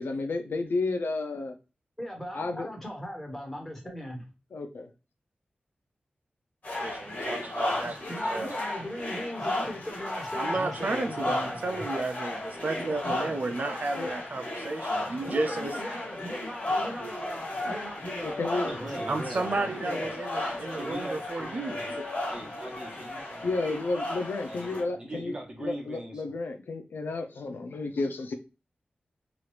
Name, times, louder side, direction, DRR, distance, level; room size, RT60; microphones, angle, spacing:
voice 1, 0.0-1.5 2.3-2.7 4.5-4.9 14.0-14.1 15.2-15.3 18.2-18.7 19.8-20.1 23.4-25.3 25.6-28.3, left 3 dB, 80° left, 0.5 m, -32 dB
voice 2, 2.0-4.3 8.1-11.9 12.7-13.5 15.2-20.1, equal, 10° left, 1.3 m, -39 dB
sound 1, 6.6-24.8, left 1 dB, 45° left, 1.4 m, -34 dB
voice 3, 6.8-8.0 8.3-8.6 10.4-15.8 19.1-22.0, right 3 dB, 55° right, 0.4 m, -33 dB
voice 4, 18.6-19.7 20.7-21.9 22.3-23.5 24.5-26.4, right 1 dB, 25° right, 1.0 m, -40 dB
3.0 x 2.4 x 3.1 m
wide cardioid pair, 95°, 3 cm